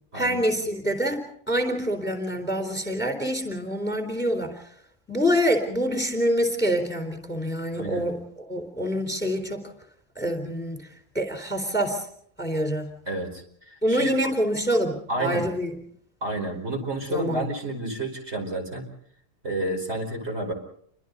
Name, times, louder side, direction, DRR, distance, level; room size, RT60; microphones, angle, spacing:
voice 1, 0.1-4.7 5.1-9.7 10.2-10.9 11.1-12.1 12.4-12.9 13.8-15.8 17.1-17.4, equal, 10° left, 6 dB, 3.9 m, -26 dB
voice 2, 7.7-8.1 13.1-14.1 15.1-15.5 16.2-18.9 19.4-20.5, right 1 dB, 55° right, 2 dB, 5.3 m, -30 dB
30.0 x 25.0 x 4.1 m, 0.65 s
omnidirectional pair, 1.3 m